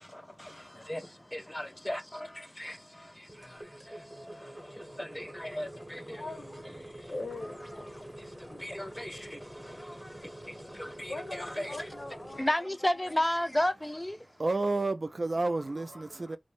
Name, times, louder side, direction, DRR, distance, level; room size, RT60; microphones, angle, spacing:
voice 1, 1.3-2.0 2.6-2.7 5.0-5.7 8.6-9.1 10.8-11.1 11.4-11.7 12.4-14.1, left 1 dB, 15° left, 0.4 m, -31 dB
sound 1, 3.3-12.4, right 1 dB, 20° right, 0.8 m, -47 dB
voice 2, 6.1-6.7 7.1-7.9 8.5-8.7 11.1-13.1, left 2 dB, 70° left, 0.6 m, -42 dB
voice 3, 14.4-16.4, right 2 dB, 65° right, 0.3 m, -30 dB
2.6 x 2.0 x 3.1 m
wide cardioid pair, 60°, 0 cm